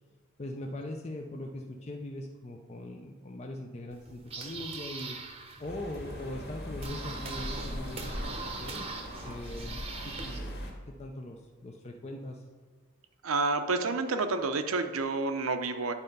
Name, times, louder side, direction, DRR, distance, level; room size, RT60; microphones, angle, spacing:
voice 1, 0.4-5.3 5.6-8.9 9.2-12.4, left 1 dB, 30° left, 2 dB, 0.5 m, -41 dB
sound 1, 3.9-10.4, right 4 dB, 30° right, 0.8 m, -42 dB
sound 2, 5.6-10.7, equal, 50° left, 1.9 m, -40 dB
voice 2, 13.2-15.9, right 3 dB, 85° right, 8 dB, 0.7 m, -29 dB
9.7 x 4.4 x 5.3 m, 1.5 s
head